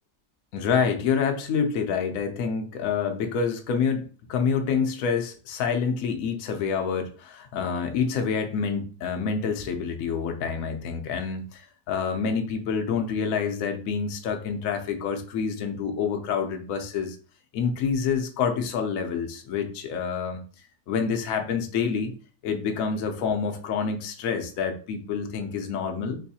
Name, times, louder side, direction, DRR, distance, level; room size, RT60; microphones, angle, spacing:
voice 1, 0.5-17.2 17.5-20.4 20.9-22.1 22.4-26.2, left 6 dB, 65° left, 4 dB, 0.9 m, -27 dB
3.9 x 2.6 x 2.7 m, 0.38 s
omnidirectional pair, 1.8 m